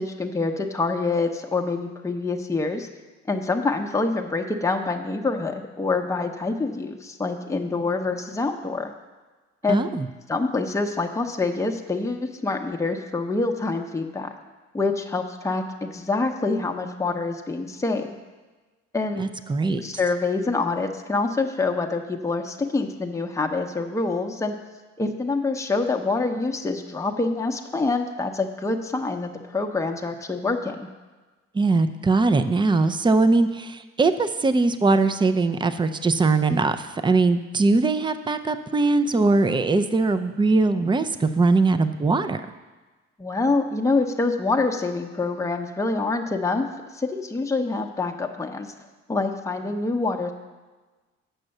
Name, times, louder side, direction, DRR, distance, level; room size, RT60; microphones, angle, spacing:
voice 1, 0.0-2.9 3.3-8.9 9.6-9.9 10.3-14.3 14.7-18.1 18.9-19.2 19.8-24.6 25.0-30.9 43.2-46.7 46.9-48.7 49.1-50.3, left 3 dB, 10° left, 3 dB, 0.8 m, -26 dB
voice 2, 9.7-10.1 19.2-19.8 31.5-42.4, right 3 dB, 15° right, 10 dB, 0.5 m, -21 dB
7.9 x 6.0 x 6.5 m, 1.3 s
cardioid pair, 90°, 30 cm